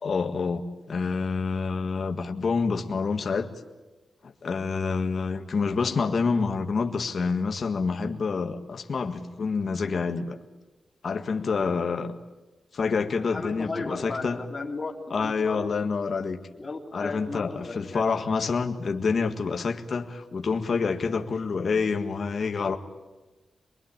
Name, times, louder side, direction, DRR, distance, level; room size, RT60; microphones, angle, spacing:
voice 1, 0.0-3.5 4.2-10.4 11.0-12.1 12.7-14.4 15.1-16.4 16.9-22.8, left 5 dB, 45° left, 4 dB, 1.7 m, -27 dB
voice 2, 11.7-12.1 13.2-15.6 16.6-18.0, left 3 dB, 25° left, 1 dB, 3.4 m, -35 dB
26.0 x 21.0 x 8.7 m, 1.2 s
wide cardioid pair, 175°, 0 cm